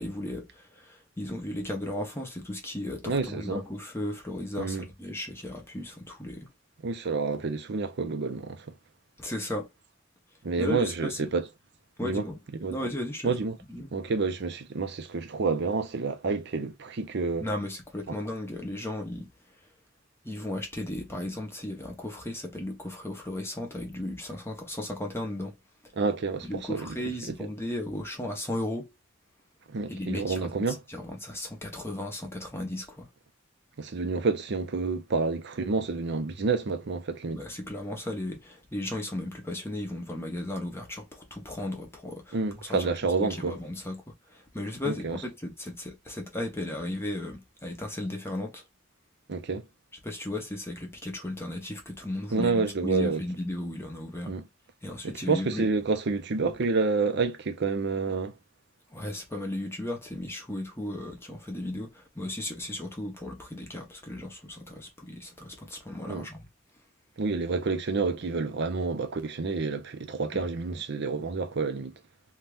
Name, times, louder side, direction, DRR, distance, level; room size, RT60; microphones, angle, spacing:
voice 1, 0.0-6.5 9.2-9.7 10.6-11.3 12.0-12.4 12.7-13.3 13.7-13.9 17.4-19.3 20.2-25.6 25.8-25.9 26.4-28.9 29.9-33.1 37.3-42.8 43.2-48.6 50.0-54.4 54.8-55.7 58.9-66.5 70.3-70.5, left 1 dB, 15° left, 0.7 m, -35 dB
voice 2, 3.0-3.6 4.6-4.8 6.8-8.8 10.4-11.5 12.0-12.2 12.6-12.8 13.2-13.6 13.9-17.5 18.1-18.2 26.0-27.0 29.7-30.8 33.8-37.4 42.3-43.6 44.8-45.2 49.3-49.7 52.3-53.2 54.3-54.4 55.0-58.4 66.1-66.3 67.2-71.9, right 4 dB, 60° right, 0.6 m, -29 dB
2.7 x 2.4 x 3.4 m
head